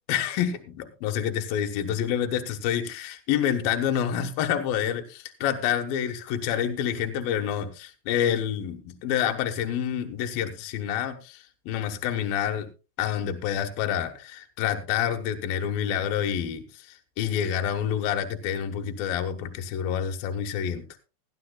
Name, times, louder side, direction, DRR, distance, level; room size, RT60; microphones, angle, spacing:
voice 1, 0.1-12.7 13.0-16.6 17.2-20.9, left 9 dB, 70° left, 5 dB, 2.6 m, -28 dB
18.0 x 13.0 x 2.3 m, 0.31 s
omnidirectional pair, 4.9 m